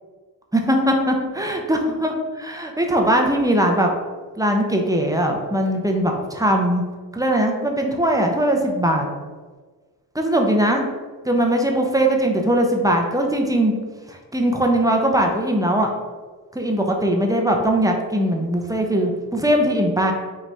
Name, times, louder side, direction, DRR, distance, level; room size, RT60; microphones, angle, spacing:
voice 1, 0.5-3.9 4.4-6.8 7.1-9.1 10.1-10.9 11.2-13.7 14.1-15.9 16.5-20.1, right 1 dB, 10° right, 1 dB, 0.8 m, -20 dB
5.3 x 2.5 x 3.4 m, 1.4 s
supercardioid pair, 40°, 42 cm